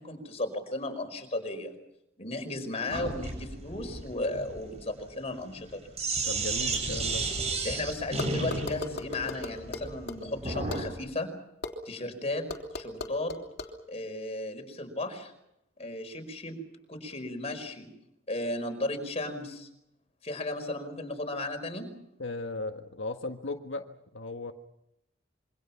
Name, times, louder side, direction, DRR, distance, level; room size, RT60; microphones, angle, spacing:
voice 1, 0.0-1.8 2.2-5.9 7.6-11.3 11.9-12.5 12.7-13.3 13.9-15.3 15.8-16.6 16.9-17.9 18.3-19.7 20.2-21.9, left 2 dB, 35° left, 6 dB, 5.1 m, -35 dB
Sink (filling or washing), 2.9-10.9, right 3 dB, 35° right, 6.6 m, -33 dB
voice 2, 6.2-7.3 22.2-24.5, left 2 dB, 85° left, 4 dB, 1.5 m, -36 dB
sound 1, 8.2-10.2 10.7-10.8 11.6-11.7 12.5-13.7, left 2 dB, 60° left, 3.3 m, -36 dB
27.0 x 24.5 x 5.9 m, 0.80 s
head